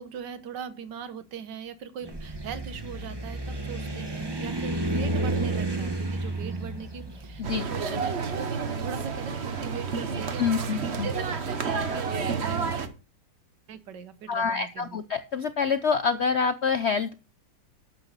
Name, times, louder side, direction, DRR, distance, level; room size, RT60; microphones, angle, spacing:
voice 1, 0.0-12.9 13.7-15.0, right 7 dB, 80° right, 13 dB, 1.7 m, -40 dB
sound 1, 2.0-9.2, right 2 dB, 15° right, 1.1 m, -31 dB
sound 2, 7.4-12.9, right 5 dB, 40° right, 1.2 m, -30 dB
voice 2, 10.4-11.1 14.3-17.1, left 5 dB, 70° left, 11 dB, 0.6 m, -26 dB
12.0 x 8.4 x 4.0 m, 0.33 s
omnidirectional pair, 1.9 m